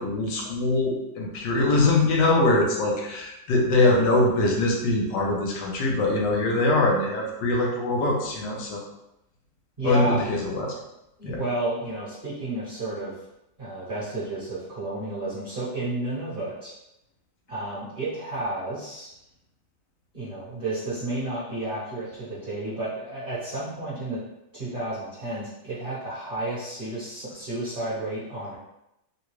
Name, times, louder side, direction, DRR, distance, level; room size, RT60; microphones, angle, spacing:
voice 1, 0.0-8.8 9.8-10.7 11.2-11.4, left 2 dB, 70° left, -1 dB, 1.3 m, -23 dB
voice 2, 3.9-4.3 9.8-10.3 11.2-13.1 13.6-16.7 17.5-19.1 20.1-24.2 24.5-28.6, right 2 dB, 35° right, -10 dB, 1.1 m, -32 dB
3.8 x 2.2 x 3.0 m, 0.87 s
omnidirectional pair, 2.1 m